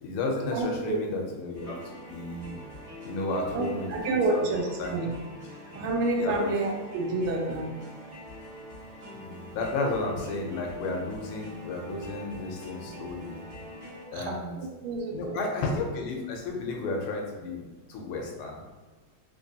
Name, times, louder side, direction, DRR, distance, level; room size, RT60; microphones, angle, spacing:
voice 1, 0.0-2.5 3.0-4.5 4.8-5.0 5.7-5.8 6.2-6.5 9.1-13.4 14.1-14.6 15.1-17.6 17.9-18.6, left 2 dB, 80° left, 1 dB, 1.5 m, -33 dB
voice 2, 0.5-1.0 3.5-5.1 5.7-7.8 14.1-14.4 14.8-15.4, right 3 dB, 80° right, 1 dB, 1.5 m, -29 dB
sound 1, 1.5-14.1, left 1 dB, 30° right, 1.1 m, -44 dB
3.8 x 2.9 x 2.7 m, 1.2 s
omnidirectional pair, 2.4 m